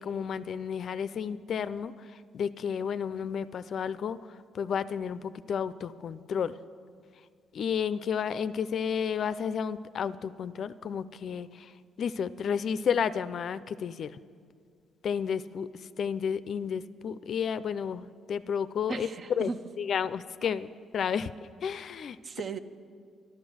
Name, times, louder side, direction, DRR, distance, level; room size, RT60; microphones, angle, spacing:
voice 1, 0.0-6.6 7.5-14.2 15.0-19.5 19.8-20.7 20.9-21.3 21.6-22.2, left 7 dB, 60° left, 14 dB, 0.4 m, -32 dB
voice 2, 18.9-19.6 20.4-20.5 22.2-22.6, right 4 dB, 45° right, 11 dB, 0.6 m, -36 dB
12.0 x 11.5 x 6.3 m, 2.1 s
cardioid pair, 90°, 0 cm